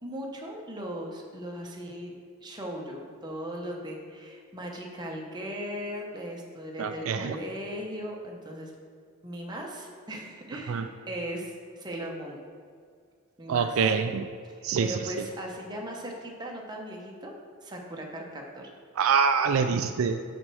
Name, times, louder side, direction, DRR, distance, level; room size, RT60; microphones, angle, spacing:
voice 1, 0.0-2.1 2.4-8.7 9.2-12.4 13.4-13.8 14.6-17.3 17.6-18.7, equal, 20° right, -1 dB, 0.9 m, -38 dB
voice 2, 6.8-7.4 10.7-10.9 13.5-14.3 14.6-15.3 19.0-20.2, right 6 dB, 70° right, 8 dB, 0.3 m, -25 dB
6.2 x 4.4 x 6.2 m, 2.1 s
head